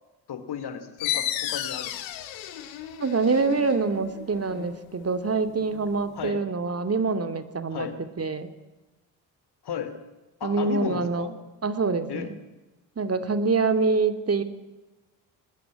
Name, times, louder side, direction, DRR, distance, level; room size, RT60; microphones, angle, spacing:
voice 1, 0.3-2.3 6.1-6.4 7.7-8.0 9.6-10.0 10.4-11.3 12.1-12.3, left 8 dB, 50° left, 11 dB, 3.6 m, -34 dB
sound 1, 1.0-6.3, left 12 dB, 70° left, 2.5 m, -34 dB
voice 2, 3.0-7.9 8.2-8.5 10.4-11.4 11.6-12.3 13.0-14.4, right 4 dB, 30° right, 9 dB, 2.8 m, -25 dB
22.5 x 20.0 x 8.9 m, 1.1 s
hypercardioid pair, 50°, 48 cm